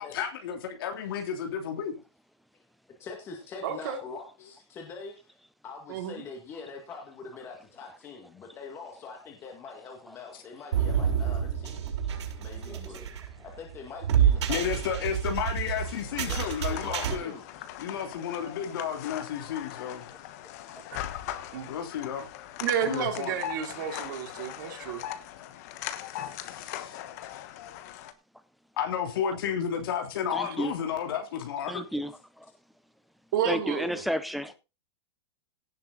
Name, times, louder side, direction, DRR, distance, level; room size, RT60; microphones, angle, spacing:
voice 1, 0.1-1.9 14.5-17.3 17.8-20.0 21.7-22.3 22.9-23.4 26.1-27.0 28.8-31.8, left 8 dB, 55° left, 3.4 m, -32 dB
voice 2, 3.0-5.4 5.6-11.9 12.4-13.1 13.4-15.1 16.2-17.4, left 5 dB, 15° left, 2.0 m, -44 dB
voice 3, 3.6-4.0 5.9-6.2 18.4-18.5 21.5-21.7 22.6-25.0 30.4-30.5 33.3-34.0, right 8 dB, 50° right, 3.2 m, -31 dB
sound 1, 10.7-17.1, right 8 dB, 85° right, 6.2 m, -28 dB
voice 4, 12.7-13.1 20.7-20.8 24.9-25.0 30.3-30.7 31.7-32.1 33.5-34.6, equal, ahead, 0.6 m, -32 dB
sound 2, 15.8-28.1, left 12 dB, 35° left, 1.2 m, -40 dB
17.0 x 7.3 x 4.0 m
supercardioid pair, 180°, 14 cm